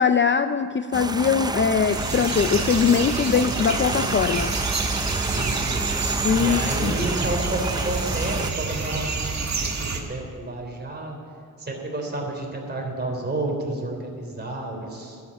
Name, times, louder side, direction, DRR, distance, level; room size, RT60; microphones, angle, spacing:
voice 1, 0.0-4.5 6.2-6.9, left 6 dB, 35° left, 10 dB, 0.4 m, -21 dB
sound 1, 0.9-8.5, right 2 dB, 10° right, 0.6 m, -29 dB
sound 2, 1.8-10.0, right 4 dB, 50° right, 1.8 m, -28 dB
voice 2, 5.3-5.8 6.3-9.2 9.9-11.2 11.6-15.2, right 2 dB, 30° right, 1 dB, 3.3 m, -30 dB
12.0 x 8.3 x 9.3 m, 2.2 s
cardioid pair, 90°, 34 cm